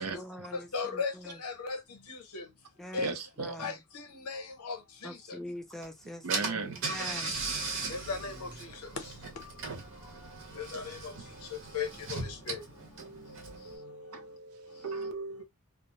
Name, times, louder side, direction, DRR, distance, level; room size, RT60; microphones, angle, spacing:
voice 1, 0.0-1.4 2.8-3.8 5.0-7.4, left 1 dB, ahead, 0.4 m, -44 dB
voice 2, 0.5-2.4 2.9-3.1 3.6-5.4 7.9-8.7 10.5-11.1 11.5-12.6, left 5 dB, 85° left, 0.8 m, -37 dB
voice 3, 3.0-3.7 6.2-6.8 13.0-15.4, right 4 dB, 85° right, 0.6 m, -38 dB
Car / Engine, 5.8-5.9 6.3-13.7, right 3 dB, 60° right, 0.9 m, -38 dB
2.3 x 2.0 x 2.8 m
head